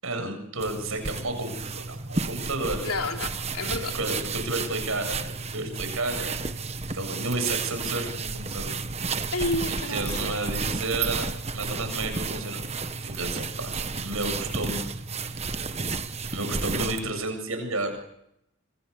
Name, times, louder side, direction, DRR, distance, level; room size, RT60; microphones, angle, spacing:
voice 1, 0.0-2.8 3.9-6.4 6.9-8.8 9.7-11.3 11.5-12.6 13.0-14.9 15.1-15.4 16.3-18.0, right 2 dB, 70° right, 6 dB, 7.6 m, -31 dB
sound 1, 0.6-17.1, right 4 dB, 30° right, 1.3 m, -32 dB
voice 2, 2.8-3.9 9.3-10.3, left 2 dB, 80° left, 4 dB, 3.4 m, -30 dB
26.5 x 26.0 x 7.0 m, 0.79 s
head